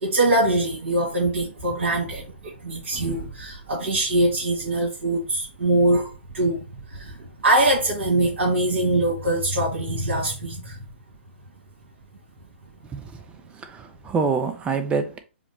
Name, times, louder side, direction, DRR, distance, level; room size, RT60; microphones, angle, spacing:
voice 1, 0.0-6.1 6.3-6.6 6.9-7.1 7.4-10.8, right 1 dB, 70° right, 1.8 m, -23 dB
voice 2, 12.8-13.2 13.5-15.2, right 5 dB, 15° right, 0.5 m, -26 dB
4.9 x 2.1 x 4.2 m
hypercardioid pair, 130°, 7 cm